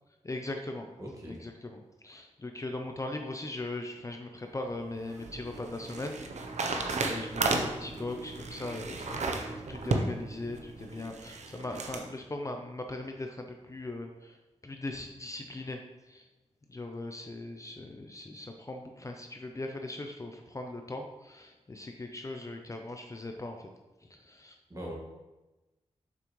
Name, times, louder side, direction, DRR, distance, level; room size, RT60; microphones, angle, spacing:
voice 1, 0.2-0.9 1.2-6.2 6.6-14.4 14.6-15.8 16.1-16.3 16.7-23.7 24.1-24.6, left 2 dB, 25° left, 4 dB, 0.5 m, -39 dB
voice 2, 1.0-1.4 24.7-24.9, equal, 30° right, -2 dB, 1.6 m, -40 dB
sound 1, 4.7-12.1, right 3 dB, 80° right, 0.7 m, -34 dB
7.2 x 6.1 x 3.1 m, 1.1 s
wide cardioid pair, 105°, 12 cm